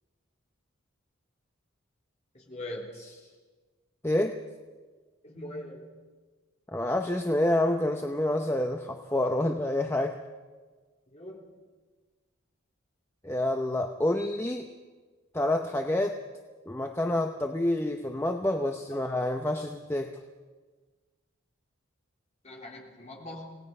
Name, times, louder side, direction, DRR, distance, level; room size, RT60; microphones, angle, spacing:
voice 1, 2.3-2.9 5.2-5.9 11.1-11.4 18.9-19.0 22.4-23.6, left 1 dB, 30° left, -1 dB, 3.5 m, -41 dB
voice 2, 4.0-4.4 6.7-10.2 13.2-14.7 15.3-16.2 16.7-20.2, left 1 dB, 10° left, 4 dB, 0.8 m, -28 dB
27.0 x 18.0 x 5.5 m, 1.4 s
head